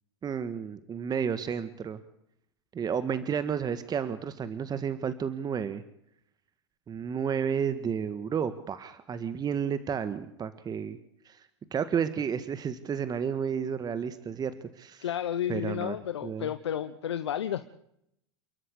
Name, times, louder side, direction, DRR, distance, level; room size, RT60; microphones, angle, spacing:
voice 1, 0.2-2.0 2.7-5.8 6.9-11.0 11.2-15.0 15.5-16.0 16.2-16.5, right 7 dB, 30° right, 12 dB, 1.7 m, -32 dB
voice 2, 15.0-17.7, left 10 dB, 85° left, 11 dB, 1.1 m, -32 dB
29.5 x 13.0 x 8.2 m, 0.74 s
hypercardioid pair, 90°, 14 cm